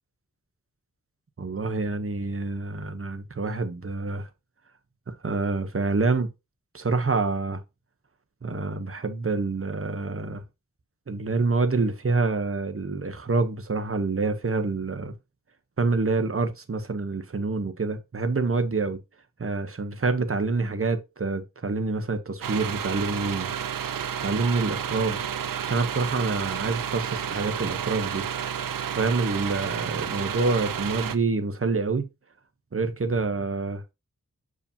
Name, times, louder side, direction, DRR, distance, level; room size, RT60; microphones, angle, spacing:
voice 1, 1.4-4.3 5.1-6.3 6.7-7.6 8.4-10.4 11.1-15.1 15.8-19.0 19.4-23.5 24.2-25.2 25.6-28.3 28.9-32.1 32.7-33.8, right 3 dB, 40° right, 0.9 m, -27 dB
sound 1, 22.4-31.2, right 8 dB, 75° right, 0.5 m, -31 dB
7.0 x 4.8 x 2.8 m
wide cardioid pair, 65°, 34 cm